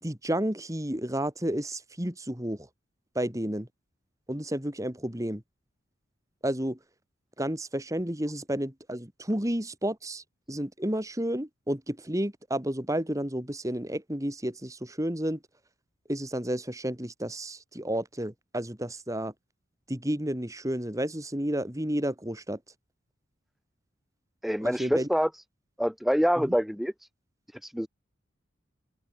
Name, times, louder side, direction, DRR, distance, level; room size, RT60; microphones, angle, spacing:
voice 1, 0.0-2.7 3.1-3.7 4.3-5.4 6.4-6.8 7.4-15.4 16.1-19.3 19.9-22.6 24.6-25.1 26.4-26.5, right 1 dB, 15° right, 2.8 m, -31 dB
voice 2, 24.4-25.3 25.8-26.9 27.6-27.9, equal, ahead, 0.8 m, -26 dB
head